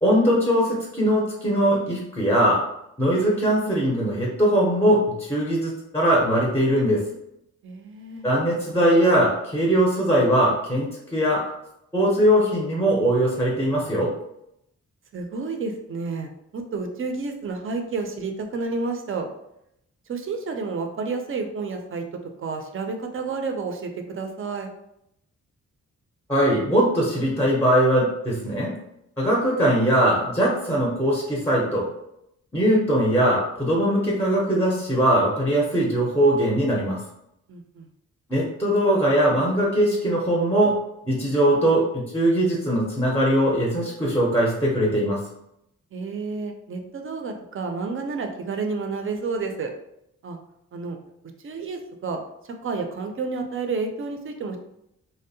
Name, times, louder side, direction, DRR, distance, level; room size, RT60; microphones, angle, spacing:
voice 1, 0.0-2.6 3.0-7.0 8.2-11.5 11.9-14.1 26.3-28.7 29.2-31.9 32.5-37.0 38.3-40.8 41.1-45.2, equal, 5° left, -4 dB, 0.5 m, -21 dB
voice 2, 7.6-8.3 15.1-19.3 20.1-22.1 22.4-24.7 37.5-37.9 45.9-49.7 50.2-50.4 50.7-51.0 51.4-52.2 52.6-54.6, right 4 dB, 45° right, 4 dB, 0.4 m, -30 dB
2.6 x 2.0 x 2.6 m, 0.79 s
wide cardioid pair, 115°, 30 cm